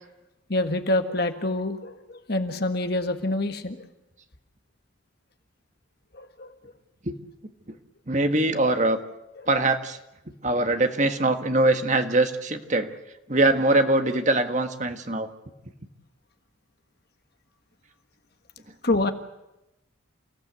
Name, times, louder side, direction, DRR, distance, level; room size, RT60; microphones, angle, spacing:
voice 1, 0.5-3.8 6.1-6.5 18.8-19.1, left 2 dB, 50° left, 7 dB, 1.6 m, -26 dB
voice 2, 8.1-9.0 9.5-10.0 10.4-12.9 13.3-15.3, right 2 dB, 35° right, 7 dB, 1.5 m, -22 dB
29.0 x 16.0 x 8.1 m, 0.93 s
head